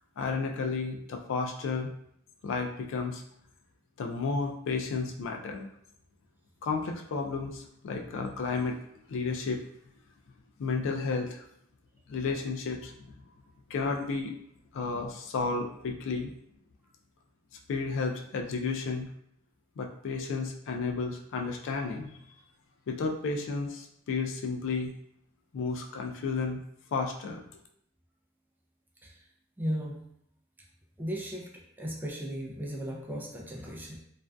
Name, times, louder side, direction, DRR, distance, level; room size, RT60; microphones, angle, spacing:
voice 1, 0.2-1.9 2.4-3.2 4.0-5.7 6.6-8.8 9.1-9.6 10.6-11.4 12.1-13.0 13.7-14.3 14.7-16.3 17.7-19.1 19.8-22.4 22.9-24.9 25.5-26.6 26.9-27.4, left 4 dB, 65° left, 2 dB, 0.3 m, -32 dB
voice 2, 29.6-30.0 31.0-31.5 31.8-34.0, equal, 10° right, -2 dB, 0.4 m, -36 dB
2.5 x 2.2 x 2.2 m, 0.72 s
head